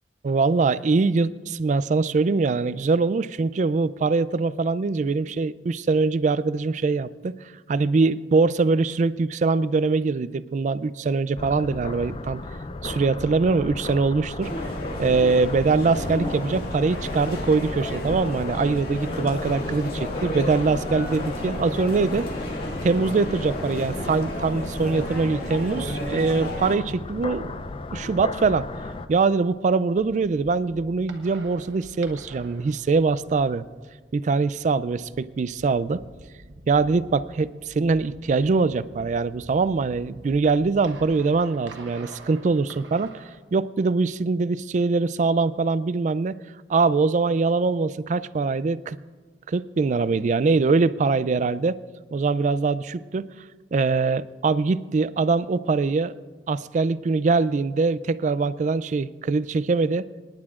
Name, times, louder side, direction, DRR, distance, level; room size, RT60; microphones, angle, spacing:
voice 1, 0.2-7.4 7.7-12.4 12.8-14.7 15.0-22.3 22.8-27.5 27.9-28.7 29.1-33.6 34.1-36.0 36.7-43.2 43.5-46.4 46.7-49.0 49.5-51.8 52.1-53.3 53.7-56.1 56.5-60.1, right 4 dB, 40° right, 17 dB, 0.3 m, -23 dB
sound 1, 11.4-29.1, left 2 dB, 30° left, 0.4 m, -35 dB
sound 2, 14.4-26.7, left 1 dB, 55° left, 2.0 m, -32 dB
sound 3, 30.0-43.4, right 2 dB, 90° right, 1.1 m, -47 dB
26.0 x 10.5 x 2.4 m, 1.4 s
head